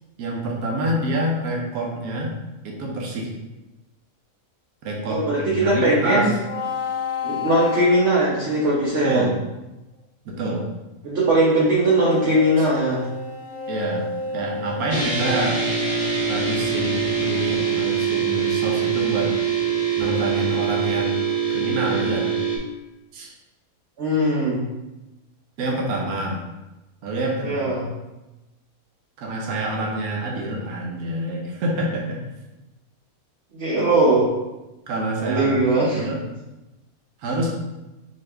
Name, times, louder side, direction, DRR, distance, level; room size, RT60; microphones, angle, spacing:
voice 1, 0.2-2.4 2.6-3.3 4.8-6.3 9.0-9.4 10.2-10.7 12.6-12.7 13.7-14.1 14.3-15.6 16.3-19.3 20.0-22.4 23.1-23.3 25.6-26.4 27.0-27.8 29.2-32.2 34.9-36.2 37.2-37.5, right 1 dB, 75° right, -1 dB, 1.3 m, -27 dB
voice 2, 5.1-6.3 7.2-9.3 11.0-13.0 24.0-24.6 27.4-27.9 33.5-34.3 35.2-36.0, right 1 dB, 55° right, -6 dB, 1.0 m, -20 dB
unknown feedback, 6.4-8.6 11.8-15.0, left 4 dB, 90° left, 1.5 m, -30 dB
sound 1, 14.9-22.6, right 6 dB, 30° right, 1.1 m, -23 dB
5.0 x 2.8 x 3.3 m, 1.0 s
omnidirectional pair, 1.6 m